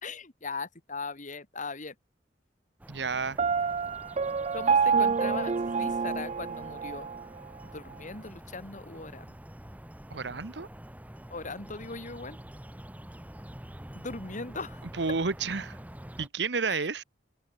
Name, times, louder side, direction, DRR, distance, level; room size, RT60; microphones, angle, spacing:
voice 1, 0.0-2.0 4.5-5.5 5.8-7.1 7.6-9.3 11.3-12.4 13.9-14.8 16.7-17.0, left 3 dB, 45° left, 2.5 m, -39 dB
sound 1, 2.8-16.3, equal, 10° right, 1.5 m, -47 dB
voice 2, 2.9-3.4 10.1-10.7 15.0-15.8 16.2-17.0, right 4 dB, 70° right, 1.1 m, -31 dB
Piano, 3.4-7.2, right 5 dB, 35° right, 0.4 m, -27 dB
head